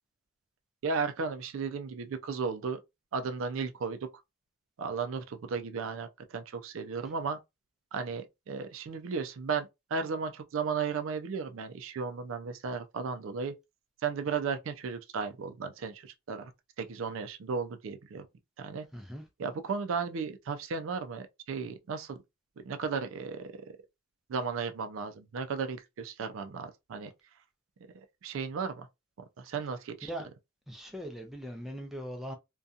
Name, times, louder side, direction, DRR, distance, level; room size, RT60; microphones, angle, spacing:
voice 1, 0.8-2.8 3.1-4.0 4.8-7.4 7.9-13.5 14.0-16.5 16.8-18.3 18.6-18.9 19.4-22.2 22.6-23.5 24.3-27.1 28.2-28.9 29.4-30.1, right 5 dB, 70° right, 0.4 m, -35 dB
voice 2, 18.9-19.2 30.1-30.3 30.7-32.4, equal, ahead, 0.4 m, -40 dB
2.6 x 2.2 x 2.4 m
head